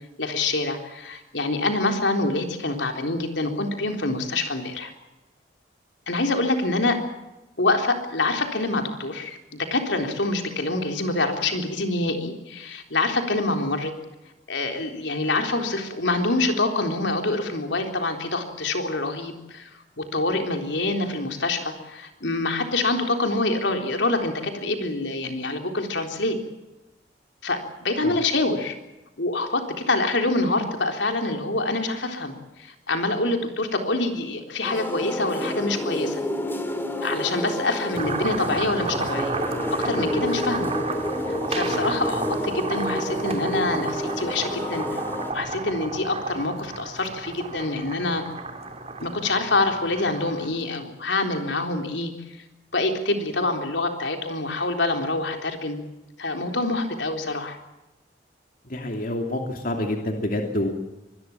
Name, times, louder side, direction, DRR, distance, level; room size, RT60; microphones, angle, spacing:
voice 1, 0.2-4.9 6.1-7.0 7.6-13.9 14.5-19.7 20.0-26.4 27.4-28.7 29.2-36.2 37.0-39.4 39.7-40.7 41.3-48.2 49.0-52.1 52.7-55.8 56.2-57.6, left 2 dB, 75° left, 4 dB, 3.8 m, -26 dB
sound 1, 34.6-45.3, left 1 dB, 10° left, 2.7 m, -29 dB
sound 2, 37.9-50.7, right 3 dB, 35° right, 3.1 m, -32 dB
voice 2, 58.6-60.7, left 1 dB, 50° left, 3 dB, 2.8 m, -28 dB
25.0 x 20.5 x 7.3 m, 0.99 s
head